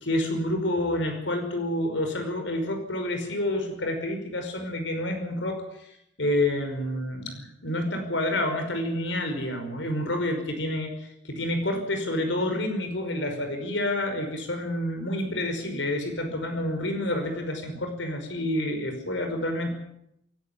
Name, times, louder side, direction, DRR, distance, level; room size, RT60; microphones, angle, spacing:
voice 1, 0.0-5.9 6.2-19.8, left 1 dB, 80° left, 5 dB, 5.4 m, -28 dB
28.0 x 11.5 x 9.7 m, 0.78 s
head